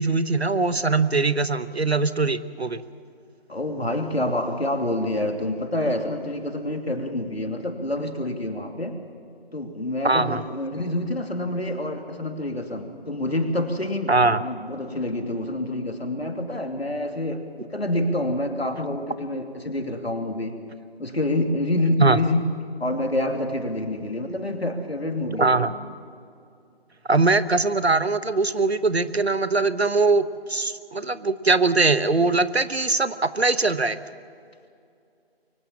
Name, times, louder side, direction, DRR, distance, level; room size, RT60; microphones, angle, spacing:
voice 1, 0.0-2.8 10.0-10.4 14.1-14.4 22.0-22.2 25.4-25.7 27.1-34.0, right 3 dB, 85° right, 13 dB, 1.1 m, -21 dB
voice 2, 3.5-9.0 9.5-14.1 14.4-20.5 21.0-22.4 22.8-25.7, left 1 dB, 80° left, 4 dB, 2.8 m, -27 dB
23.5 x 17.0 x 7.5 m, 2.5 s
figure-of-eight pair, 155°, 31 cm